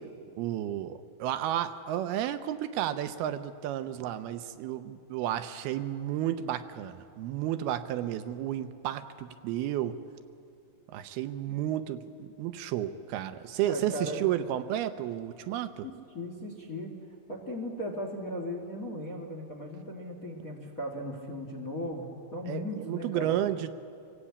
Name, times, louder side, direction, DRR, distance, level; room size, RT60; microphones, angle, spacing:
voice 1, 0.4-10.0 10.9-15.9 22.5-23.7, right 11 dB, 85° right, 10 dB, 2.7 m, -32 dB
voice 2, 13.6-14.2 15.8-16.9 17.3-23.4, equal, 40° left, 1 dB, 1.3 m, -37 dB
26.0 x 17.5 x 8.4 m, 2.5 s
omnidirectional pair, 4.5 m